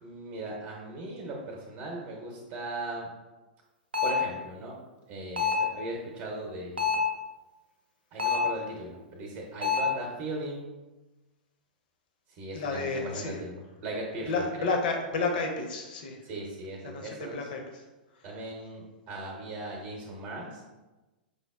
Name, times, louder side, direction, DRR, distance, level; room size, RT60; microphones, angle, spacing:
voice 1, 0.0-3.1 4.0-4.8 5.1-7.0 8.1-10.7 12.3-14.7 16.2-17.5 18.2-20.6, right 2 dB, 40° right, -1 dB, 0.7 m, -38 dB
sound 1, 3.9-4.3 5.4-5.8 6.8-7.2 8.2-8.6 9.6-10.0, left 5 dB, 90° right, 0.5 m, -26 dB
voice 2, 12.5-13.4 14.3-16.2 16.9-17.8, left 3 dB, 60° left, 2 dB, 0.6 m, -31 dB
5.0 x 2.0 x 2.3 m, 1.1 s
figure-of-eight pair, 105°, 5 cm